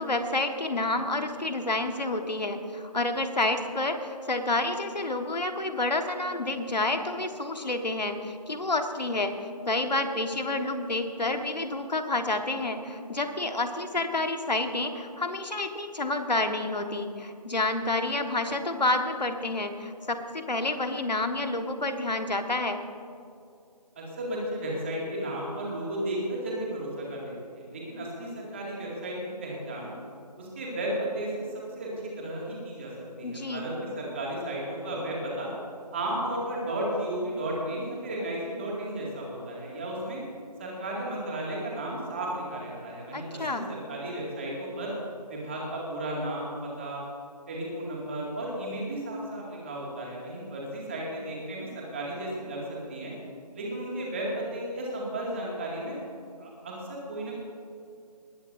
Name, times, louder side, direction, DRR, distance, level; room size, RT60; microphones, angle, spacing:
voice 1, 0.0-22.8 33.2-33.7 43.1-43.7, left 2 dB, 80° left, 6 dB, 1.5 m, -29 dB
voice 2, 24.0-29.9 30.4-31.5 31.8-32.9 33.2-35.5 35.9-40.2 40.6-44.9 45.3-47.0 47.5-52.6 52.9-53.2 53.5-56.0 56.4-57.4, right 1 dB, 20° right, -4 dB, 2.2 m, -34 dB
20.0 x 14.5 x 2.7 m, 2.5 s
figure-of-eight pair, 170°, 21 cm